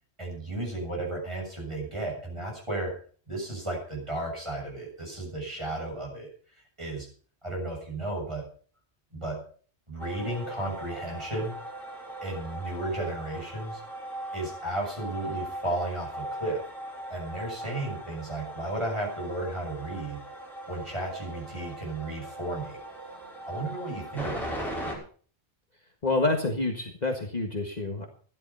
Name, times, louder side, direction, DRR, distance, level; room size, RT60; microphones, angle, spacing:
voice 1, 0.2-3.0 3.3-7.1 7.4-8.5 9.1-9.4 9.9-11.6 12.2-13.8 14.3-16.6 17.1-20.2 20.7-22.8 23.5-24.7, right 2 dB, 25° right, 0 dB, 7.2 m, -34 dB
sound 1, 10.0-25.0, right 1 dB, ahead, 5.3 m, -39 dB
voice 2, 26.0-28.1, left 2 dB, 35° left, 2 dB, 1.9 m, -28 dB
14.0 x 11.5 x 5.6 m, 0.44 s
omnidirectional pair, 1.2 m